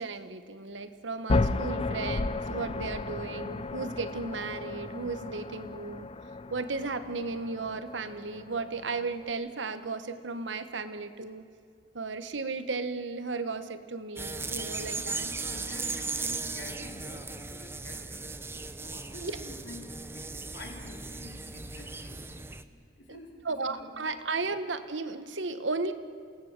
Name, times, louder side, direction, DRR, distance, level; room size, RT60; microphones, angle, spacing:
voice 1, 0.0-6.1 6.5-11.4 11.9-15.3 19.2-19.4 23.1-23.2 23.4-25.9, right 3 dB, 85° right, 11 dB, 1.2 m, -35 dB
sound 1, 1.3-9.3, left 2 dB, 30° left, 0.6 m, -34 dB
sound 2, 14.2-22.6, right 3 dB, 15° right, 0.8 m, -37 dB
voice 2, 15.0-18.4 18.8-22.6 23.0-24.2, left 1 dB, 80° left, 0 dB, 3.7 m, -48 dB
28.5 x 18.0 x 7.4 m, 2.4 s
head